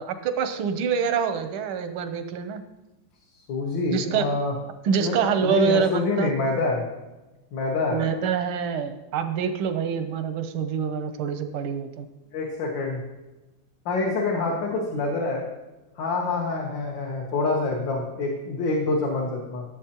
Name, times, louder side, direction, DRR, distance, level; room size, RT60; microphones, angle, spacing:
voice 1, 0.0-2.6 3.9-4.3 4.8-6.3 7.9-12.1, right 6 dB, 90° right, 9 dB, 1.6 m, -26 dB
voice 2, 3.5-4.5 5.0-5.1 5.4-6.9 7.5-8.0 12.3-13.0 13.9-15.5 16.0-19.6, left 3 dB, 65° left, -2 dB, 1.8 m, -26 dB
15.0 x 7.4 x 2.9 m, 1.0 s
omnidirectional pair, 2.2 m